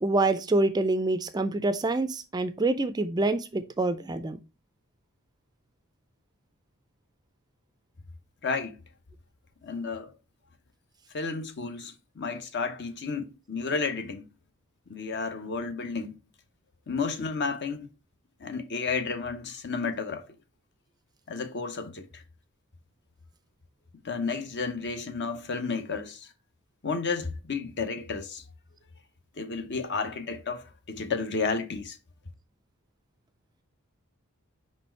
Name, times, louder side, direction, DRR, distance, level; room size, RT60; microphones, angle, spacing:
voice 1, 0.0-4.4, right 2 dB, 20° right, 0.4 m, -26 dB
voice 2, 8.4-8.8 9.6-10.1 11.1-14.3 14.9-16.2 16.9-17.9 18.4-20.2 21.3-22.2 24.0-26.3 26.8-28.4 29.4-32.0, left 4 dB, 50° left, 0.8 m, -32 dB
5.1 x 4.3 x 4.4 m
head